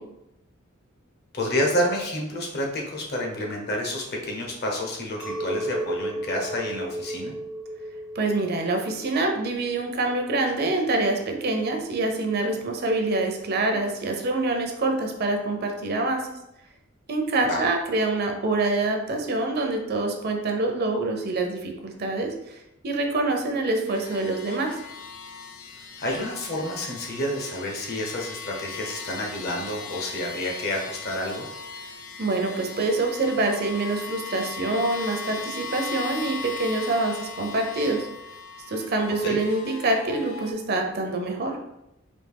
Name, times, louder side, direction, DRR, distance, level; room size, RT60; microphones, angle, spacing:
voice 1, 1.3-7.3 17.4-17.6 26.0-31.4 39.2-39.4, left 1 dB, 50° left, 0 dB, 1.0 m, -29 dB
Chink clink, 5.2-10.7, right 1 dB, 5° right, 0.5 m, -35 dB
voice 2, 8.1-16.2 17.1-24.7 32.2-38.1 38.7-41.6, right 2 dB, 50° right, 3 dB, 0.6 m, -26 dB
sound 1, 23.9-40.5, left 5 dB, 80° left, 0.6 m, -38 dB
4.2 x 2.7 x 3.4 m, 0.86 s
head